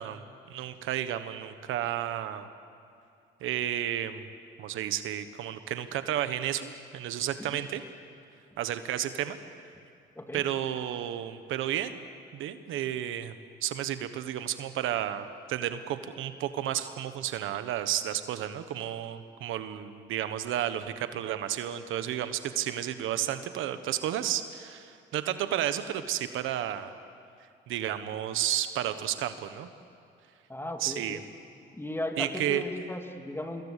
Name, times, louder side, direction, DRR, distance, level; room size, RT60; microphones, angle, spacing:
voice 1, 0.0-2.5 3.4-4.3 4.6-7.8 8.6-9.4 10.3-12.0 12.3-13.3 13.6-26.9 27.7-29.7 30.8-31.2 32.2-32.6, right 11 dB, 90° right, 10 dB, 1.3 m, -32 dB
voice 2, 30.5-31.2 31.7-33.6, left 1 dB, 10° left, 4 dB, 2.6 m, -36 dB
25.5 x 22.0 x 8.3 m, 2.5 s
cardioid pair, 90°, 20 cm